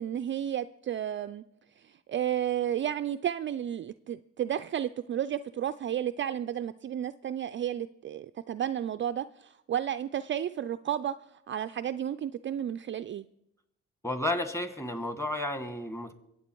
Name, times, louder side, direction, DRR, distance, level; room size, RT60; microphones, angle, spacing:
voice 1, 0.0-1.4 1.8-13.3, right 10 dB, 40° right, 11 dB, 0.4 m, -32 dB
voice 2, 14.0-16.1, left 1 dB, 10° left, 8 dB, 1.7 m, -32 dB
23.5 x 8.4 x 4.6 m, 0.81 s
cardioid pair, 90°, 30 cm